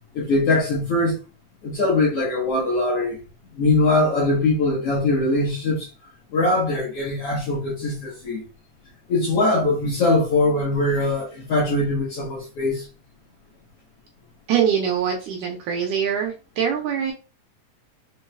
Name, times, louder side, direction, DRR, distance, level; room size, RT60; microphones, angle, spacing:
voice 1, 0.1-1.2 1.6-3.2 3.5-5.9 6.3-8.4 9.1-12.9, left 2 dB, 60° left, 1.7 m, -21 dB
voice 2, 14.5-17.1, right 8 dB, 75° right, 1.8 m, -23 dB
5.8 x 4.0 x 2.3 m
omnidirectional pair, 4.1 m